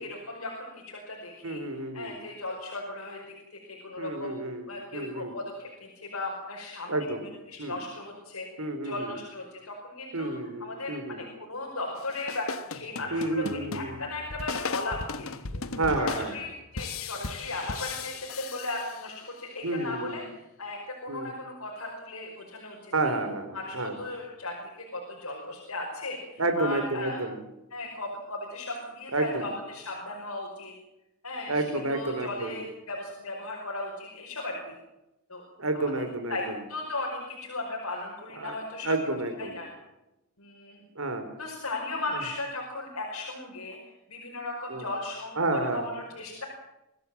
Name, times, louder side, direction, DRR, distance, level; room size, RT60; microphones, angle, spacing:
voice 1, 0.0-7.0 7.5-10.3 10.6-13.4 13.7-15.3 15.9-20.2 20.6-23.2 23.5-27.2 27.7-30.7 31.2-34.7 35.3-35.4 35.7-35.8 36.3-38.9 39.4-39.7 40.4-40.8 41.4-43.8 44.1-46.4, left 2 dB, 85° left, 0 dB, 5.3 m, -36 dB
voice 2, 1.4-2.2 4.0-5.3 6.9-7.2 7.6-7.8 8.6-9.1 10.1-11.2 13.1-14.0 15.5-16.3 19.6-20.2 21.1-21.3 22.9-23.9 26.4-27.4 29.1-29.5 31.5-32.6 35.6-36.5 38.4-38.6 38.8-39.6 41.0-41.2 44.7-44.8 45.4-45.9, right 2 dB, 80° right, 8 dB, 4.3 m, -30 dB
sound 1, 11.9-19.4, left 4 dB, 70° left, 1.2 m, -37 dB
25.0 x 16.5 x 7.8 m, 0.93 s
head